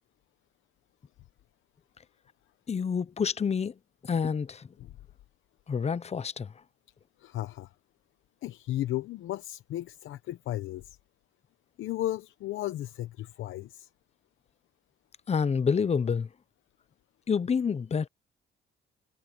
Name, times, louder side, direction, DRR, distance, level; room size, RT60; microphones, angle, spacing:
voice 1, 2.7-3.7 4.0-4.7 5.7-6.5 15.3-16.3 17.3-18.1, left 6 dB, 35° left, 0.8 m, -28 dB
voice 2, 7.2-7.7 8.4-11.0 11.8-13.9, left 14 dB, 80° left, 0.9 m, -35 dB
cardioid pair, 90°, 20 cm